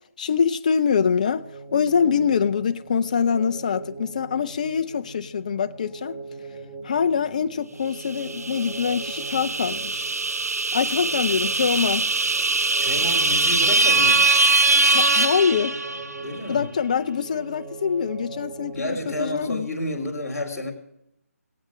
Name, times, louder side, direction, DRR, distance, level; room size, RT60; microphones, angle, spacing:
voice 1, 0.2-6.2 6.8-10.1 10.7-12.1 14.9-15.8 16.5-19.7, left 6 dB, 30° left, 0.5 m, -24 dB
sound 1, 1.2-20.0, right 3 dB, 25° right, 3.5 m, -41 dB
sound 2, 8.2-16.2, right 3 dB, 75° right, 0.7 m, -22 dB
voice 2, 12.8-14.3 16.2-16.7 18.7-20.7, left 1 dB, 10° left, 3.2 m, -30 dB
19.5 x 8.7 x 6.4 m
figure-of-eight pair, 165°, 8 cm